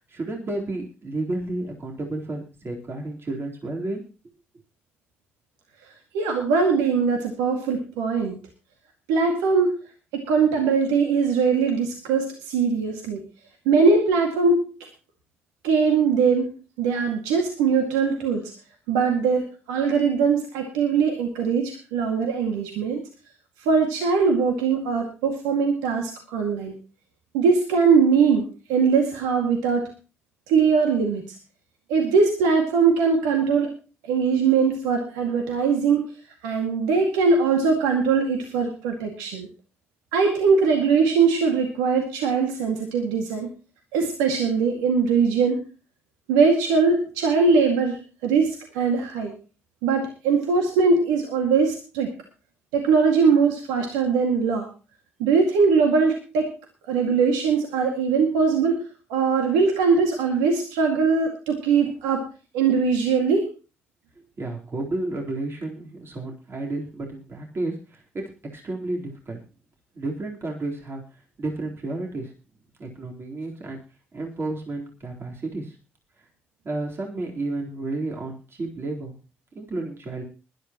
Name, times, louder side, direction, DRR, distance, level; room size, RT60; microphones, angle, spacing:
voice 1, 0.1-4.0 64.4-68.2 68.5-69.4 69.9-71.0 71.4-72.3 72.8-73.8 74.1-75.7 76.6-79.1 79.5-80.2, right 2 dB, 45° right, 0 dB, 3.9 m, -31 dB
voice 2, 6.1-8.4 9.1-9.8 10.1-13.2 13.7-14.7 15.6-18.5 18.9-23.0 23.6-26.8 27.3-29.9 30.5-31.3 31.9-33.7 34.0-36.1 36.4-39.5 40.1-43.5 43.9-45.6 46.3-49.3 49.8-52.1 52.7-54.7 55.2-56.5 56.9-62.3 62.5-63.5, right 5 dB, 90° right, 2 dB, 2.1 m, -21 dB
20.5 x 12.0 x 3.0 m, 0.33 s
hypercardioid pair, 50°, 6 cm